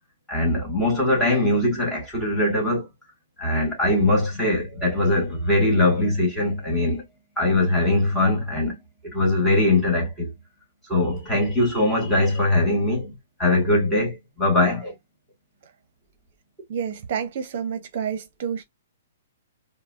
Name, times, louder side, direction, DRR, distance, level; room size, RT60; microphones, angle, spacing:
voice 1, 0.3-2.9 3.4-7.1 7.4-8.8 9.0-10.3 10.9-13.1 13.4-14.9, left 2 dB, 10° left, 2.1 m, -21 dB
voice 2, 16.7-18.6, right 7 dB, 55° right, 0.7 m, -29 dB
4.7 x 2.1 x 2.4 m
hypercardioid pair, 140°, 0 cm